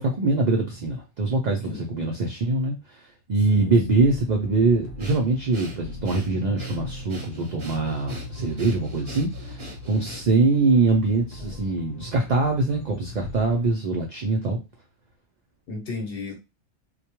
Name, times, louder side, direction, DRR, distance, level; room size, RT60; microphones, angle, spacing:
voice 1, 0.0-2.8 3.3-14.6, right 3 dB, 85° right, 1 dB, 0.4 m, -23 dB
sound 1, 3.4-13.7, left 1 dB, 75° left, 1.0 m, -39 dB
Breathing, 5.0-10.5, equal, 30° right, 0.6 m, -43 dB
voice 2, 15.7-16.3, left 3 dB, 55° left, 0 dB, 0.9 m, -35 dB
2.2 x 2.1 x 2.9 m, 0.26 s
omnidirectional pair, 1.3 m